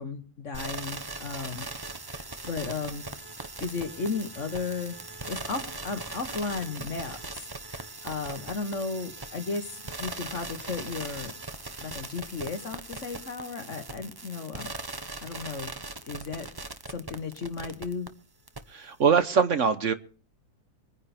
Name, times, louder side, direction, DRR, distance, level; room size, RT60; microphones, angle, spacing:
voice 1, 0.0-1.7 2.1-3.1 3.6-5.0 5.3-11.3 11.8-14.7 15.2-15.7 16.0-16.5 16.9-18.1, left 4 dB, 45° left, 8 dB, 1.6 m, -35 dB
sound 1, 0.5-18.1 18.5-18.6, right 3 dB, 20° right, 0.6 m, -40 dB
voice 2, 18.7-19.9, right 6 dB, 50° right, 11 dB, 1.1 m, -23 dB
24.0 x 9.8 x 4.4 m, 0.39 s
omnidirectional pair, 2.0 m